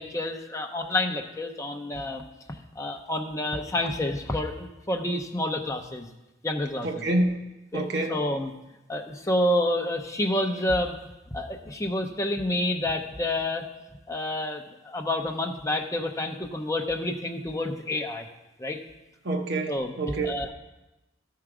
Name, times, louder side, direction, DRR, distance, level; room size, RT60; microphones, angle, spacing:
voice 1, 0.0-2.2 2.5-6.1 6.4-7.0 7.7-8.5 8.9-11.0 11.3-13.6 14.1-18.3 18.6-18.8 19.7-19.9 20.2-20.5, left 1 dB, 15° left, 3 dB, 0.6 m, -29 dB
voice 2, 6.8-7.4 7.7-8.2 19.2-20.4, right 2 dB, 55° right, 3 dB, 0.9 m, -27 dB
12.5 x 4.7 x 4.9 m, 1.0 s
head